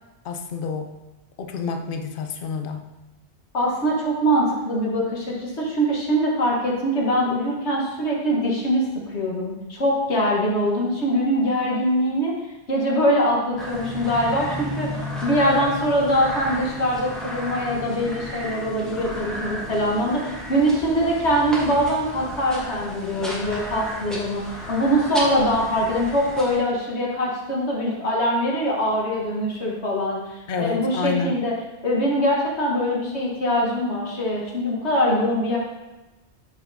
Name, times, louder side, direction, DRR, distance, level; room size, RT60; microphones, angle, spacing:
voice 1, 0.2-0.9 1.4-2.9 30.5-31.4, left 5 dB, 55° left, 5 dB, 0.7 m, -28 dB
voice 2, 3.5-12.3 12.7-14.9 15.2-24.4 24.7-31.5 31.8-35.6, equal, 75° left, -3 dB, 1.6 m, -23 dB
sound 1, 13.6-26.6, left 1 dB, ahead, 1.2 m, -34 dB
7.2 x 5.8 x 2.7 m, 1.1 s
omnidirectional pair, 1.2 m